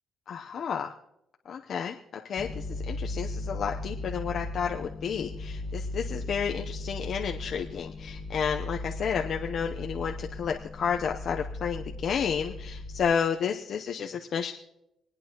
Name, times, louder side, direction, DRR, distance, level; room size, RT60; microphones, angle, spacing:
voice 1, 0.3-0.9 1.5-14.5, left 7 dB, 60° left, 2 dB, 0.7 m, -31 dB
sound 1, 2.4-13.1, left 2 dB, 35° left, 1.2 m, -37 dB
27.0 x 9.2 x 2.9 m, 0.84 s
cardioid pair, 90°, 0 cm